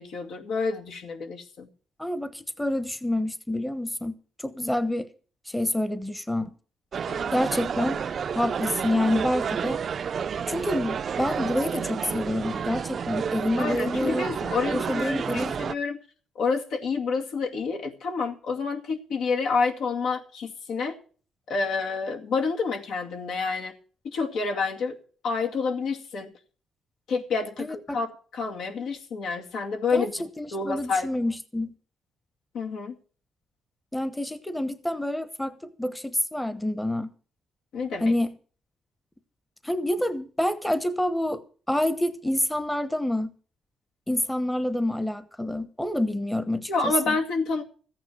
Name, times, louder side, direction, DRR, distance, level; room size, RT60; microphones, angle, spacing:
voice 1, 0.0-1.7 7.1-7.3 13.6-16.0 16.4-21.0 21.5-23.7 24.0-25.0 25.2-26.3 27.1-30.1 30.5-31.1 32.5-32.9 37.7-38.1 46.7-47.6, left 4 dB, 75° left, 2.3 m, -28 dB
voice 2, 2.0-5.1 5.5-6.5 7.3-8.0 8.3-9.8 10.5-14.3 14.7-15.6 27.6-27.7 29.9-31.7 33.9-37.1 38.0-38.3 39.6-43.3 44.1-47.2, left 1 dB, 5° left, 1.0 m, -27 dB
sound 1, 6.9-15.7, right 7 dB, 50° right, 0.5 m, -30 dB
14.5 x 9.0 x 6.4 m
cardioid pair, 90°, 0 cm